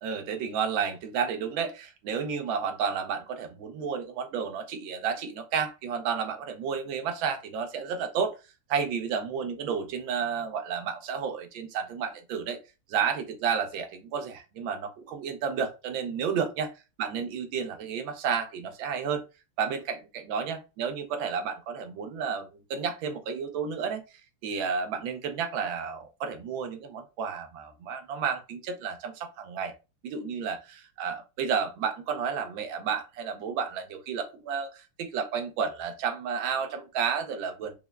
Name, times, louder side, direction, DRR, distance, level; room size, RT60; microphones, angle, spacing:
voice 1, 0.0-8.4 8.7-12.6 12.9-16.7 17.0-19.2 19.6-24.0 24.4-29.7 30.0-37.7, right 6 dB, 70° right, 1.4 m, -31 dB
5.6 x 2.1 x 2.2 m
omnidirectional pair, 2.3 m